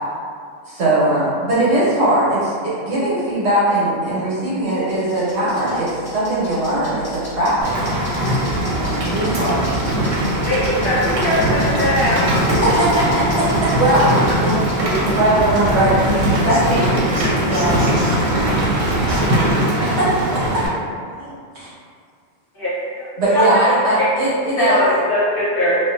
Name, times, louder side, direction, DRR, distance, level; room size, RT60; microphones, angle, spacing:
voice 1, 0.7-7.7 8.7-9.7 12.5-14.1 14.4-17.0 17.5-17.7 20.0-20.1 21.5-21.7 23.2-24.8, right 1 dB, 65° right, -9 dB, 1.1 m, -19 dB
sound 1, 4.7-14.9, equal, 25° left, 0.8 m, -37 dB
Rain, 7.6-20.7, right 1 dB, 85° right, 1.0 m, -20 dB
voice 2, 10.4-12.4 22.5-23.7 24.6-25.8, left 1 dB, 50° left, -11 dB, 1.0 m, -20 dB
voice 3, 16.5-19.7 21.2-21.3, equal, 50° right, -12 dB, 0.7 m, -34 dB
2.5 x 2.4 x 2.4 m, 2.1 s
omnidirectional pair, 1.3 m